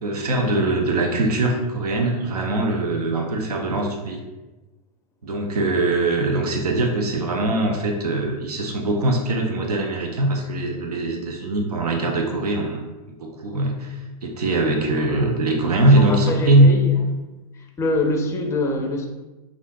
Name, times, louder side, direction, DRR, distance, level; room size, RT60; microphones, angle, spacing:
voice 1, 0.0-4.2 5.2-12.8 13.2-16.7, right 2 dB, 90° right, 2 dB, 0.5 m, -21 dB
voice 2, 16.0-16.9 17.6-19.1, left 2 dB, 15° left, 3 dB, 0.4 m, -25 dB
3.5 x 2.4 x 2.6 m, 1.1 s
hypercardioid pair, 110°, 19 cm